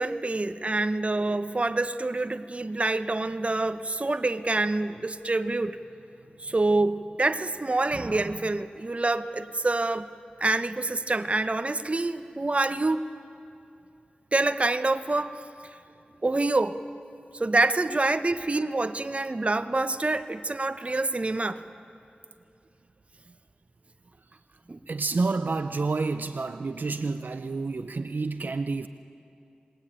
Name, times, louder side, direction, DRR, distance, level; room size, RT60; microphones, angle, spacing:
voice 1, 0.0-5.8 6.4-10.1 10.4-13.0 14.3-15.4 16.2-16.8 17.3-21.6 24.7-24.8, right 2 dB, 40° right, 10 dB, 1.0 m, -26 dB
voice 2, 24.9-28.9, right 3 dB, 65° right, 10 dB, 0.7 m, -29 dB
28.5 x 20.5 x 9.0 m, 2.6 s
wide cardioid pair, 60°, 3 cm